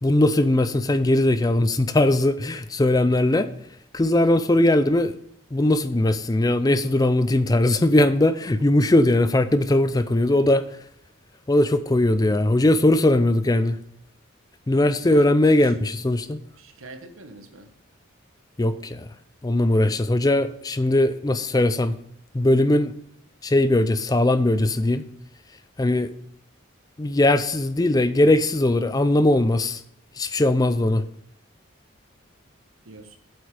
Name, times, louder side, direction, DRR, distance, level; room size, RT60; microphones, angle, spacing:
voice 1, 0.0-3.5 3.9-5.1 5.5-10.6 11.5-13.8 14.7-16.4 18.6-19.1 19.4-21.9 22.3-22.9 23.4-25.0 25.8-26.1 27.0-29.8 30.2-31.1, left 1 dB, 20° left, 13 dB, 0.4 m, -20 dB
voice 2, 15.0-15.7 16.6-17.7 32.8-33.2, right 2 dB, 80° right, 7 dB, 1.4 m, -44 dB
8.8 x 8.1 x 4.9 m, 0.70 s
head